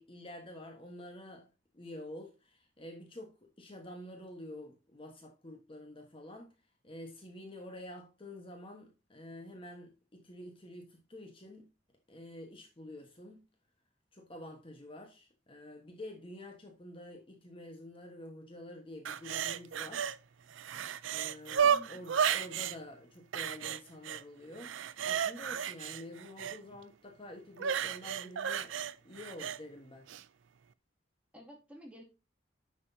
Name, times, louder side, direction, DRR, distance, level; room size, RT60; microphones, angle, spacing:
voice 1, 0.0-1.5 1.7-6.5 6.8-11.6 12.1-13.4 14.1-20.1 21.1-24.8 25.0-28.8 29.0-30.1, left 1 dB, 30° left, 1.3 m, -48 dB
sound 1, 19.0-20.2 20.5-22.8 23.3-24.2 24.6-26.6 27.6-29.6 30.1-30.2, right 8 dB, 90° right, 0.5 m, -33 dB
voice 2, 21.6-22.0 26.7-26.8 31.3-32.0, equal, 5° right, 2.3 m, -51 dB
10.0 x 6.2 x 2.7 m
head